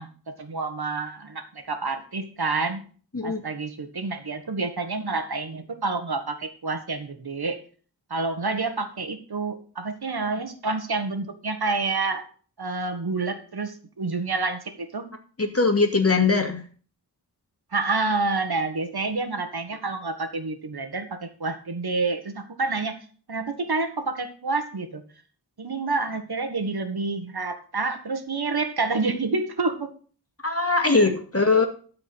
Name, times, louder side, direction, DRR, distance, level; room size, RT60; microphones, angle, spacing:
voice 1, 0.0-2.8 3.2-7.6 8.1-12.3 12.6-15.0 17.7-22.9 23.3-25.0 25.6-29.9 30.9-31.1, right 3 dB, 70° right, 7 dB, 1.6 m, -28 dB
voice 2, 15.4-16.6 30.4-31.6, left 3 dB, 35° left, 4 dB, 2.3 m, -21 dB
13.0 x 4.9 x 6.2 m, 0.41 s
wide cardioid pair, 55°, 39 cm